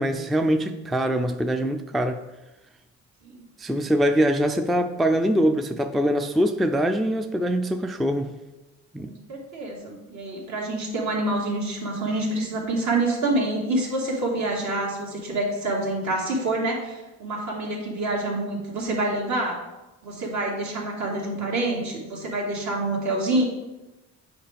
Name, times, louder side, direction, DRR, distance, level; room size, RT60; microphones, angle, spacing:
voice 1, 0.0-2.2 3.6-8.3 8.9-9.1, equal, ahead, 7 dB, 0.3 m, -23 dB
voice 2, 9.0-19.6 20.0-23.4, right 2 dB, 65° right, -2 dB, 2.0 m, -27 dB
7.9 x 4.6 x 3.5 m, 1.0 s
cardioid pair, 90°, 30 cm